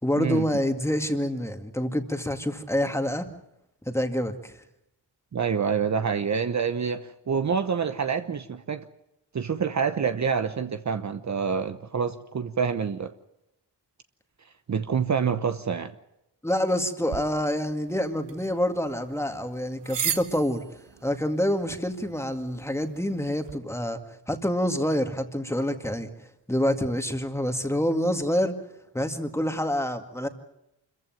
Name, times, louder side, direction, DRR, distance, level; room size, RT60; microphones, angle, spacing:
voice 1, 0.0-3.3 3.8-4.6 16.4-20.6 21.0-24.0 24.3-26.1 26.5-28.5 28.9-30.3, equal, 5° left, 2.1 m, -27 dB
voice 2, 5.3-8.9 9.3-13.1 14.7-15.9, right 6 dB, 40° right, 1.0 m, -27 dB
sound 1, 17.1-23.6, right 8 dB, 75° right, 1.8 m, -38 dB
26.0 x 15.0 x 9.2 m
cardioid pair, 95°, 43 cm